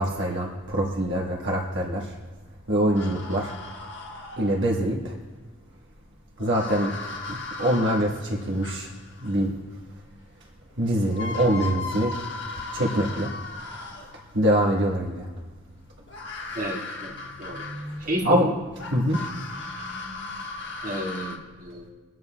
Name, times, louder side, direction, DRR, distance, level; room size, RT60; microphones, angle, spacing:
voice 1, 0.0-2.1 2.7-3.5 4.4-5.2 6.4-6.9 7.3-8.9 9.2-9.5 10.8-12.2 12.7-13.3 13.6-13.7 14.3-15.3 17.1-18.5 18.8-20.3, right 1 dB, 60° right, -2 dB, 1.3 m, -25 dB
sound 1, 2.9-4.8 6.4-9.4 10.7-10.8 11.1-14.3 16.1-18.2 18.8-21.4, left 3 dB, 60° left, 1.3 m, -37 dB
voice 2, 16.6-17.6 18.1-18.5 20.8-21.8, equal, 40° right, -3 dB, 1.8 m, -31 dB
23.0 x 9.3 x 2.2 m, 1.3 s
head